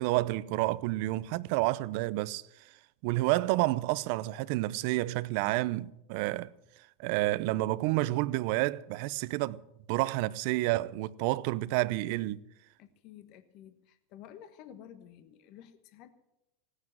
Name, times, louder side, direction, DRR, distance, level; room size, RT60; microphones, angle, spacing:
voice 1, 0.0-2.4 3.0-6.5 7.0-9.6 9.9-12.4, right 18 dB, 60° right, 0.6 m, -29 dB
voice 2, 12.8-16.1, left 10 dB, 55° left, 1.3 m, -52 dB
17.0 x 9.6 x 7.7 m
supercardioid pair, 120°, 0 cm